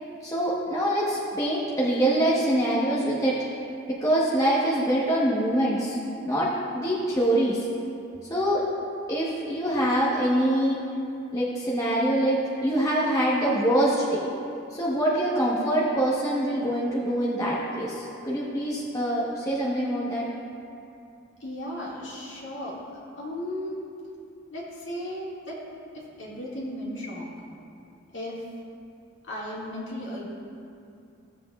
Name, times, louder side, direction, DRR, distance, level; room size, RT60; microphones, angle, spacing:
voice 1, 0.2-3.4 3.9-6.0 6.2-7.7 8.3-8.6 9.1-10.8 11.3-14.2 14.7-20.2, right 1 dB, 15° left, -7 dB, 1.0 m, -24 dB
voice 2, 21.4-22.8 23.2-23.9 24.5-25.6 25.9-27.3 28.1-28.4 29.3-30.3, left 1 dB, 60° left, -6 dB, 2.1 m, -35 dB
16.0 x 7.5 x 2.4 m, 2.6 s
head